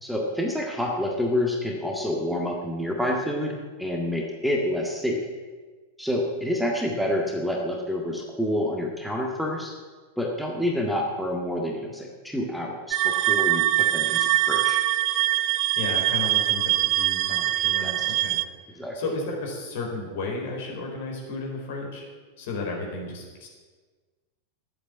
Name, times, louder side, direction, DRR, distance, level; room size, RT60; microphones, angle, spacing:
voice 1, 0.0-5.2 6.0-9.7 10.2-14.8 17.8-18.1 18.7-19.0, left 1 dB, ahead, 0 dB, 1.8 m, -28 dB
sound 1, 12.9-18.4, right 15 dB, 40° right, 0.6 m, -23 dB
voice 2, 15.5-18.4 18.7-22.0 22.4-23.5, left 3 dB, 55° left, 0 dB, 4.3 m, -33 dB
11.5 x 8.6 x 9.6 m, 1.4 s
figure-of-eight pair, 90°, 0 cm